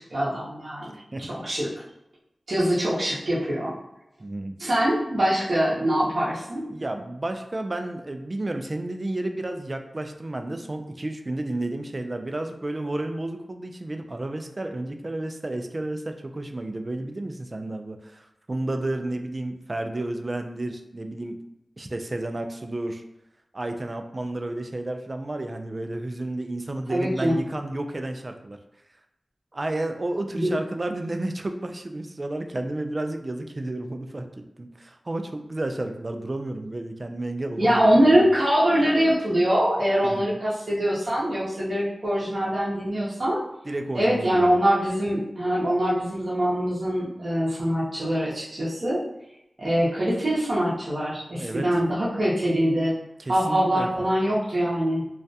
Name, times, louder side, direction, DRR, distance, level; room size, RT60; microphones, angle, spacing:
voice 1, 0.0-1.0 1.4-1.7 2.5-3.7 4.6-6.6 26.9-27.3 30.3-30.5 37.6-43.4 43.9-49.0 49.6-52.9 53.3-55.0, equal, 60° right, -9 dB, 0.7 m, -23 dB
voice 2, 4.2-4.5 6.7-21.4 21.8-23.0 23.5-28.6 29.5-34.3 34.6-38.2 40.0-40.4 43.7-44.5 51.4-51.8 53.2-53.9, right 2 dB, 40° right, 5 dB, 0.3 m, -31 dB
2.3 x 2.1 x 2.6 m, 0.87 s
cardioid pair, 45°, 0 cm